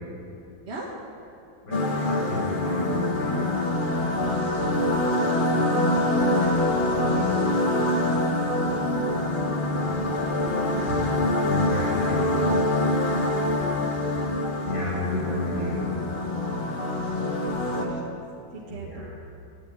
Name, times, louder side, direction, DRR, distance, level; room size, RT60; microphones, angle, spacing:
voice 1, 1.6-3.4 11.4-12.5 14.5-15.9 18.6-19.1, left 1 dB, 85° left, -5 dB, 5.9 m, -32 dB
sound 1, 1.7-17.9, left 1 dB, 30° left, 1.6 m, -25 dB
voice 2, 3.3-4.1 5.6-11.1 13.0-13.8 14.9-15.1 16.5-18.0 18.5-19.1, right 1 dB, 35° right, -3 dB, 1.7 m, -39 dB
14.0 x 10.0 x 9.0 m, 2.6 s
omnidirectional pair, 2.1 m